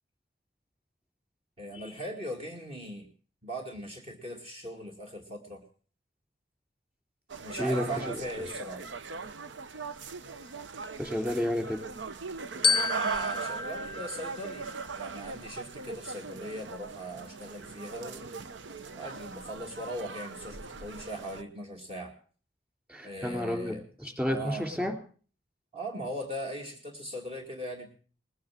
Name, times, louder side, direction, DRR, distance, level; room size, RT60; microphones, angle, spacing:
voice 1, 1.6-3.1 3.4-5.6 7.4-8.9 12.9-14.7 14.9-18.3 18.9-22.1 23.0-23.8 24.3-24.7 25.7-27.9, equal, 35° right, 2 dB, 2.2 m, -39 dB
sound 1, 7.3-21.4, right 4 dB, 75° right, 0.8 m, -39 dB
voice 2, 7.6-8.2 11.0-11.9 22.9-24.9, left 1 dB, 10° right, 5 dB, 3.2 m, -31 dB
Glockenspiel, 12.6-15.1, left 4 dB, 30° left, 0.7 m, -31 dB
20.0 x 9.4 x 7.5 m, 0.43 s
head